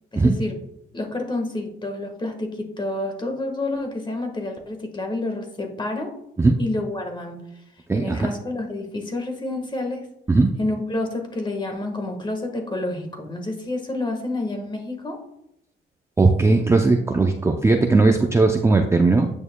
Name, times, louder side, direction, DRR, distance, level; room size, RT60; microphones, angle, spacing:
voice 1, 0.1-0.6 0.9-6.1 6.6-7.4 7.9-10.0 10.6-15.2, left 2 dB, 25° left, 4 dB, 1.4 m, -29 dB
voice 2, 7.9-8.3 10.3-10.5 16.2-19.3, right 3 dB, 15° right, 4 dB, 0.5 m, -18 dB
9.0 x 6.6 x 2.2 m, 0.78 s
cardioid pair, 90°, 20 cm